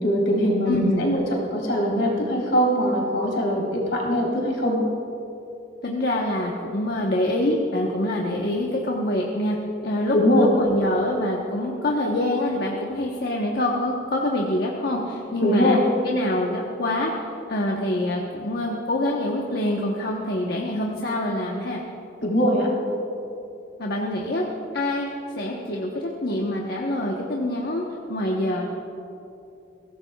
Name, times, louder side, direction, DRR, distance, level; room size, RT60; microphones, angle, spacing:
voice 1, 0.0-1.2 1.5-4.8 10.1-10.5 15.4-15.8 22.2-22.7, equal, 75° left, -3 dB, 3.8 m, -21 dB
voice 2, 0.7-1.0 5.8-9.6 9.8-15.8 16.0-17.1 17.5-21.8 23.8-24.5 24.7-25.1 25.4-27.8 28.1-28.7, left 1 dB, 55° left, -1 dB, 1.1 m, -25 dB
22.5 x 16.5 x 2.4 m, 2.8 s
head